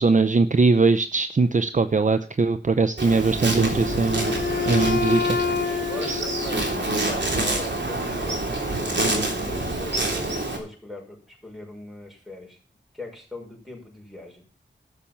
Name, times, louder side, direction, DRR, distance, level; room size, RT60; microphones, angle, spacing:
voice 1, 0.0-4.3 4.7-6.2, right 4 dB, 40° right, 10 dB, 0.6 m, -21 dB
Insect, 3.0-10.6, right 2 dB, 65° right, 3.3 m, -27 dB
Wind instrument woodwind instrument, 3.5-7.5, left 6 dB, 50° left, 1.1 m, -28 dB
voice 2, 5.8-12.6 12.9-14.5, left 2 dB, ahead, 0 dB, 6.0 m, -40 dB
13.0 x 6.8 x 7.2 m, 0.40 s
wide cardioid pair, 65°, 20 cm